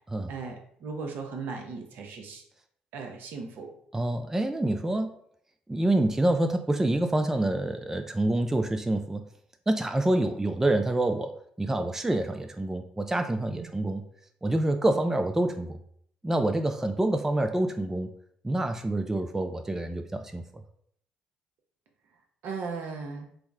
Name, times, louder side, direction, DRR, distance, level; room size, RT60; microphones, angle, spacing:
voice 1, 0.3-2.4 2.9-3.7 13.5-13.7 14.9-15.0 22.4-23.3, right 4 dB, 60° right, 3 dB, 0.6 m, -37 dB
voice 2, 3.9-5.2 5.7-9.2 9.7-11.3 11.6-14.0 14.4-15.8 16.2-18.1 18.4-20.4, right 1 dB, 10° right, 6 dB, 0.3 m, -27 dB
3.4 x 2.0 x 3.4 m, 0.65 s
hypercardioid pair, 50°, 4 cm